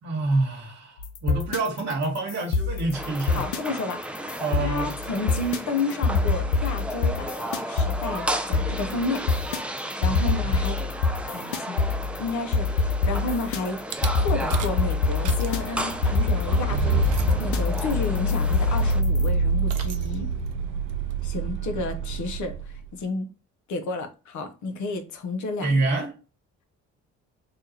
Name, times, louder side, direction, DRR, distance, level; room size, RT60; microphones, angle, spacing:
voice 1, 0.0-3.5 4.4-4.9 10.1-10.3 25.6-26.1, right 2 dB, 55° right, 1.2 m, -27 dB
sound 1, 1.0-19.3, left 4 dB, 90° left, 0.5 m, -26 dB
sound 2, 2.9-19.0, right 1 dB, 5° right, 0.4 m, -34 dB
voice 2, 3.3-4.3 4.6-9.7 10.0-10.8 11.3-11.8 12.2-13.8 14.1-20.3 21.2-23.3 23.7-25.8, left 3 dB, 60° left, 0.8 m, -31 dB
Rattle / Car / Engine starting, 13.9-14.1 14.5-14.8 15.1-22.9, right 2 dB, 75° right, 0.5 m, -26 dB
3.5 x 2.3 x 2.8 m
hypercardioid pair, 50°, 34 cm